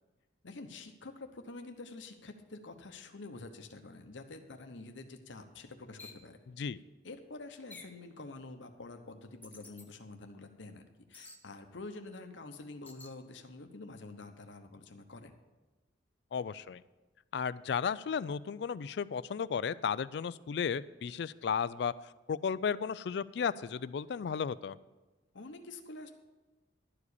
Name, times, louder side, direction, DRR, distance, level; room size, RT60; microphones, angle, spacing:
voice 1, 0.4-6.4 7.0-15.3 25.3-26.1, left 3 dB, 75° left, 6 dB, 0.9 m, -47 dB
sound 1, 6.0-6.2 7.7-8.0 9.4-9.9 11.1-11.4 12.8-13.2, left 3 dB, 10° left, 0.7 m, -51 dB
voice 2, 16.3-16.8 17.3-21.9 22.3-24.8, left 6 dB, 60° left, 18 dB, 0.3 m, -34 dB
12.0 x 4.9 x 8.2 m, 1.2 s
head